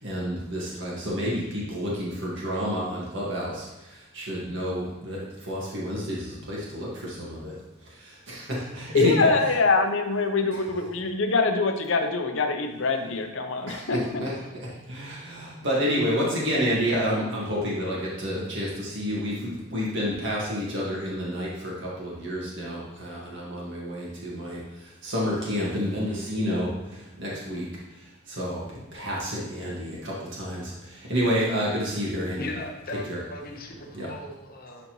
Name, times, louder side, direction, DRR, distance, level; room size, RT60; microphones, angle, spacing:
voice 1, 0.0-3.7 4.1-7.5 8.0-9.3 13.7-14.3 14.9-24.6 25.0-26.7 27.2-27.7 28.3-32.5 33.1-33.2 33.9-34.1, equal, 60° right, -5 dB, 1.8 m, -29 dB
voice 2, 8.9-14.2, left 3 dB, 65° left, 5 dB, 0.8 m, -24 dB
voice 3, 32.4-33.0 33.3-34.9, left 2 dB, 45° left, 1 dB, 1.0 m, -37 dB
11.0 x 4.0 x 3.1 m, 1.1 s
head